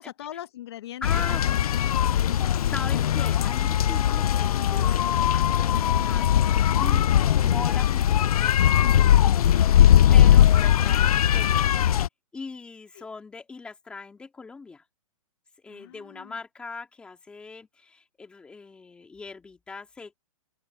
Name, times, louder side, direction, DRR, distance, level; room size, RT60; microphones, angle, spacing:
voice 1, 0.0-1.6 1.9-2.5 7.2-7.4 12.9-13.1 15.7-16.4, left 12 dB, 45° left, 1.2 m, -42 dB
sound 1, 1.0-12.1, left 10 dB, 90° left, 0.4 m, -20 dB
voice 2, 1.0-2.2 2.5-6.3 6.8-7.1 7.4-11.7 12.3-14.8 15.6-20.1, left 4 dB, 5° left, 2.2 m, -40 dB
open air
hypercardioid pair, 170°, 18 cm